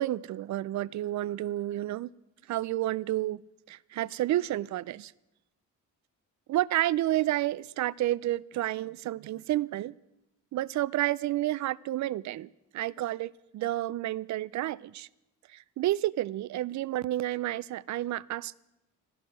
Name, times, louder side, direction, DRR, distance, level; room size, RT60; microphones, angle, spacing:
voice 1, 0.0-2.1 2.5-3.4 3.7-5.1 6.5-9.9 10.5-15.1 15.5-18.5, right 14 dB, 60° right, 0.5 m, -30 dB
15.0 x 13.5 x 6.2 m
cardioid pair, 130°, 32 cm